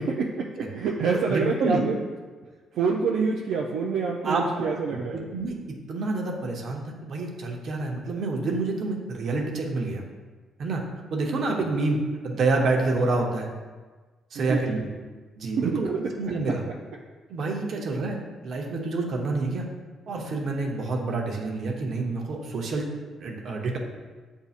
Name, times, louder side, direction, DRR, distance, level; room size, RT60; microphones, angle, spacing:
voice 1, 0.0-2.0 2.7-5.3 14.4-14.9 15.4-15.8, right 5 dB, 80° right, -1 dB, 0.4 m, -27 dB
voice 2, 1.3-1.8 4.2-4.4 5.1-5.5 5.9-10.0 10.6-10.8 11.1-12.0 12.2-13.5 14.3-14.8 15.4-16.6 17.3-18.2 18.4-19.6 20.1-22.8 23.2-23.8, right 3 dB, 65° right, 1 dB, 0.8 m, -27 dB
8.0 x 2.7 x 2.4 m, 1.4 s
cardioid pair, 90°, 0 cm